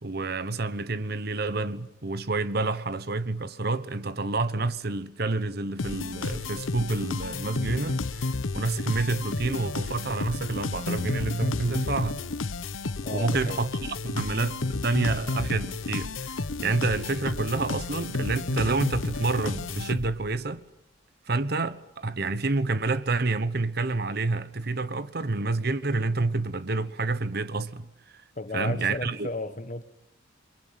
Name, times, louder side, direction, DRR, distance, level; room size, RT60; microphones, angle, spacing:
voice 1, 0.0-12.2 13.1-16.3 16.6-20.6 21.3-27.9 28.5-29.3, right 3 dB, 55° right, 1.1 m, -28 dB
sound 1, 5.8-20.4, left 3 dB, 90° left, 0.9 m, -32 dB
voice 2, 13.0-13.6 28.3-29.8, left 2 dB, 40° left, 1.4 m, -34 dB
29.5 x 23.0 x 7.6 m
head